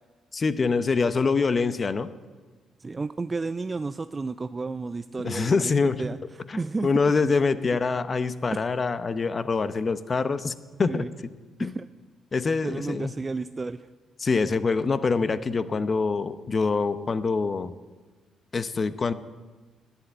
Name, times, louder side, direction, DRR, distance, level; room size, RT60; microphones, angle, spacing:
voice 1, 0.3-2.1 5.2-6.0 6.5-11.1 11.6-11.8 12.3-13.1 14.2-17.7 18.5-19.1, left 4 dB, 35° left, 13 dB, 0.7 m, -25 dB
voice 2, 2.8-5.7 6.0-6.9 8.5-8.6 10.9-11.1 11.6-11.9 12.6-13.9, right 3 dB, 25° right, 11 dB, 0.4 m, -32 dB
11.5 x 10.0 x 9.0 m, 1.3 s
cardioid pair, 90°, 0 cm